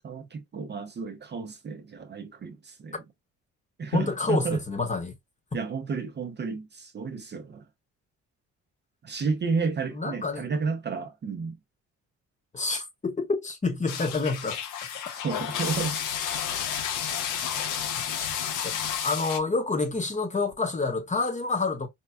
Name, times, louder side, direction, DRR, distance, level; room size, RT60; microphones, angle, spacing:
voice 1, 0.0-3.0 3.8-4.6 5.5-7.6 9.0-11.6 15.2-15.9, right 4 dB, 35° right, 0.6 m, -31 dB
voice 2, 3.9-5.1 9.9-10.5 12.5-14.6 14.9-15.0 18.6-18.7 19.0-21.9, left 3 dB, 25° left, 1.0 m, -28 dB
sound 1, 13.9-19.4, left 8 dB, 85° left, 0.7 m, -31 dB
4.3 x 2.2 x 2.2 m
cardioid pair, 90°, 30 cm